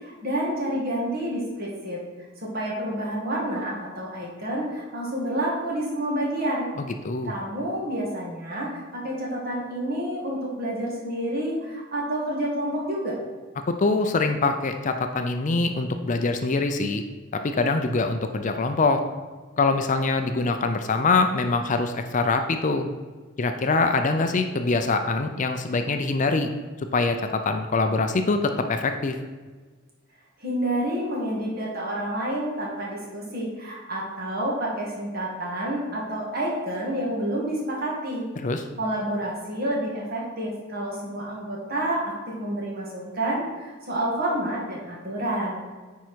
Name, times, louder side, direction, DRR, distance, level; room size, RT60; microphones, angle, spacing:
voice 1, 0.0-2.0 2.4-6.7 7.2-13.2 30.4-38.2 38.8-45.6, right 1 dB, 50° right, -3 dB, 2.3 m, -29 dB
voice 2, 13.7-17.0 17.4-19.0 19.6-22.9 23.4-26.5 26.9-29.2 38.4-38.6, left 3 dB, 40° left, 7 dB, 0.5 m, -24 dB
9.2 x 4.7 x 4.5 m, 1.4 s
head